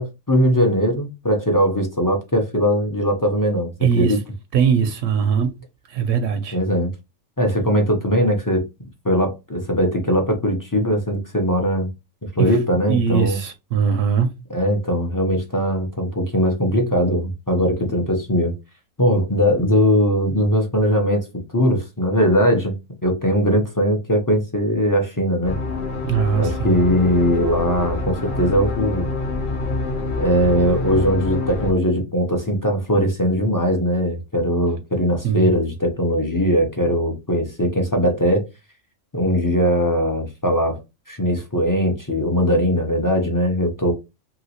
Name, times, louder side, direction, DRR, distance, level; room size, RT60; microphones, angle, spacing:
voice 1, 0.0-4.2 6.5-6.9 7.4-8.6 9.0-11.9 12.2-13.4 14.5-18.5 19.0-21.3 21.5-22.7 23.0-25.5 26.3-29.1 30.2-38.4 39.1-40.8 41.1-43.9, equal, 25° left, 0.4 m, -20 dB
voice 2, 3.8-4.2 4.5-5.5 5.9-6.6 12.4-12.5 12.9-14.3 26.0-26.8 35.2-35.5, right 7 dB, 80° right, 0.9 m, -20 dB
sound 1, 25.4-31.7, left 3 dB, 50° left, 1.0 m, -26 dB
2.9 x 2.8 x 2.8 m
omnidirectional pair, 1.3 m